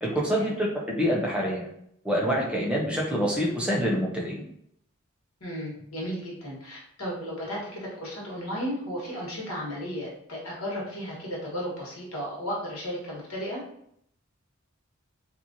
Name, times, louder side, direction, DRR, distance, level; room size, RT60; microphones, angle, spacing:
voice 1, 0.0-1.7 2.0-4.4, equal, 5° right, -4 dB, 0.4 m, -26 dB
voice 2, 5.4-13.6, equal, 85° left, -4 dB, 1.2 m, -34 dB
2.9 x 2.4 x 2.5 m, 0.71 s
head